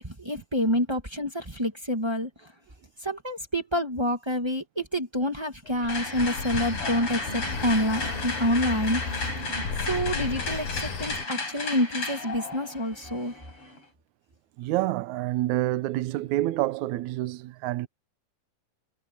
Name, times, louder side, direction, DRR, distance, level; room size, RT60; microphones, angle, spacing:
voice 1, 0.0-2.3 3.0-9.0 9.8-13.3, equal, 20° right, 0.6 m, -27 dB
sound 1, 5.7-11.3, left 4 dB, 75° left, 5.7 m, -34 dB
sound 2, 5.9-13.8, left 3 dB, 35° left, 8.8 m, -34 dB
voice 2, 14.6-17.9, right 16 dB, 70° right, 1.9 m, -28 dB
omnidirectional pair, 4.2 m